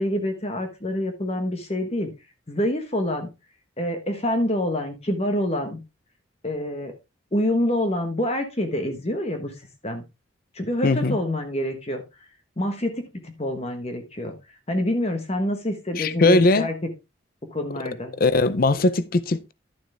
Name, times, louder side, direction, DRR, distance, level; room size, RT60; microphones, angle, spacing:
voice 1, 0.0-2.1 2.5-3.3 3.8-5.8 6.4-6.9 7.3-10.0 10.5-12.0 12.6-14.3 14.7-16.7 17.5-18.1, left 1 dB, 30° left, 1.3 m, -26 dB
voice 2, 10.8-11.2 16.0-16.7 18.1-19.5, left 2 dB, 45° left, 0.5 m, -20 dB
11.5 x 7.2 x 3.4 m
head